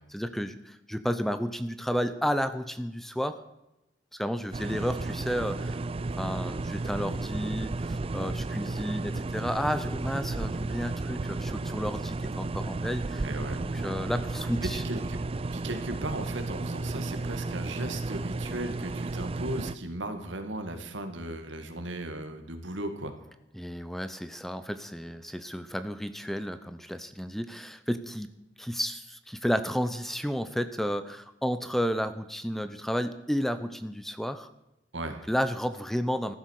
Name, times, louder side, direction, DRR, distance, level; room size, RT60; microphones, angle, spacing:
voice 1, 0.1-3.4 4.1-5.8 6.2-13.2 13.6-14.8 23.5-34.5 35.3-36.3, equal, ahead, 11 dB, 0.7 m, -32 dB
sound 1, 4.5-19.7, right 2 dB, 30° right, 0.4 m, -33 dB
voice 2, 13.2-13.7 14.6-15.2 15.5-23.1 34.9-35.2, right 1 dB, 85° right, 7 dB, 2.2 m, -36 dB
14.5 x 12.0 x 6.6 m, 0.94 s
head